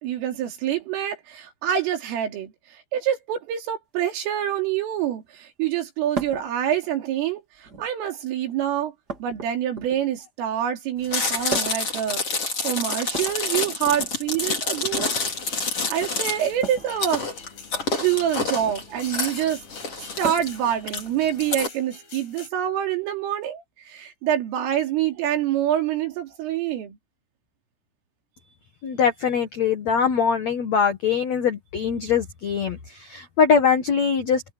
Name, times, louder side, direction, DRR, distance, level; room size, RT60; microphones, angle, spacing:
voice 1, 0.0-8.9 9.2-15.2 15.6-17.2 17.9-19.6 20.0-27.0, right 10 dB, 80° right, 5.8 m, -26 dB
sound 1, 6.1-6.5 7.5-8.0 9.1-10.2 11.5-11.9 13.0-14.1 14.8-15.1 16.6-16.9 18.5-18.9 20.2-20.6 22.1-22.2 23.4-23.5, right 3 dB, 30° right, 1.9 m, -35 dB
Chewing mastication, 11.0-21.7, left 4 dB, 30° left, 4.9 m, -28 dB
sound 2, 15.2-22.5, left 5 dB, 65° left, 8.7 m, -45 dB
voice 2, 28.8-34.4, left 6 dB, 85° left, 1.5 m, -22 dB
omnidirectional pair, 5.7 m